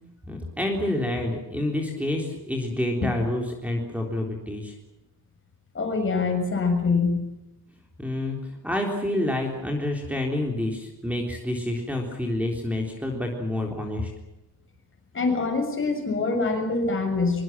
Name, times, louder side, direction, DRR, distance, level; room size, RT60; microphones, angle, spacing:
voice 1, 0.3-4.8 8.0-14.1, left 1 dB, 5° right, 1 dB, 3.8 m, -28 dB
voice 2, 5.7-7.2 15.1-17.4, left 4 dB, 30° left, 4 dB, 6.8 m, -24 dB
24.5 x 23.5 x 7.5 m, 0.95 s
wide cardioid pair, 155°, 39 cm